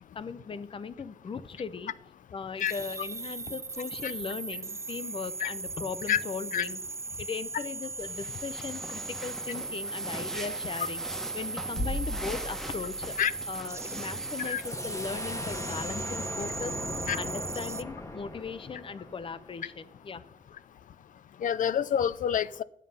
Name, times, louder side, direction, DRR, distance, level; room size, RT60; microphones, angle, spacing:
voice 1, 0.1-1.9 2.3-6.8 7.2-11.1 11.3-13.2 13.5-16.7 17.2-20.2, left 5 dB, 40° left, 0.7 m, -38 dB
sound 1, 2.6-17.8, right 4 dB, 20° right, 0.4 m, -38 dB
sound 2, 8.0-16.2, equal, 5° left, 1.1 m, -40 dB
sound 3, 14.4-19.9, left 2 dB, 25° left, 1.1 m, -39 dB
voice 2, 21.4-22.6, left 9 dB, 80° left, 0.5 m, -27 dB
11.0 x 7.5 x 5.5 m
wide cardioid pair, 145°, 13 cm